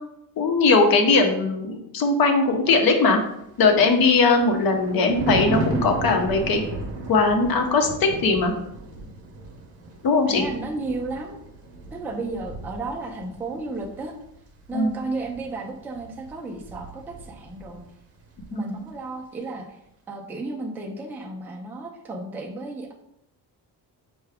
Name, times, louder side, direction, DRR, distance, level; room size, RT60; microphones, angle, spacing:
voice 1, 0.4-3.2 3.6-6.6 7.1-8.5 10.0-10.4 14.7-15.0 18.5-18.8, left 3 dB, 60° left, 4 dB, 0.8 m, -20 dB
Thunder, 3.3-17.9 18.2-18.5, right 2 dB, 35° right, 0.7 m, -35 dB
voice 2, 10.3-11.4 11.9-14.1 14.7-17.8 18.5-19.8 20.1-22.9, right 3 dB, 5° right, 0 dB, 0.3 m, -33 dB
5.6 x 2.2 x 3.4 m, 0.78 s
cardioid pair, 160°, 40 cm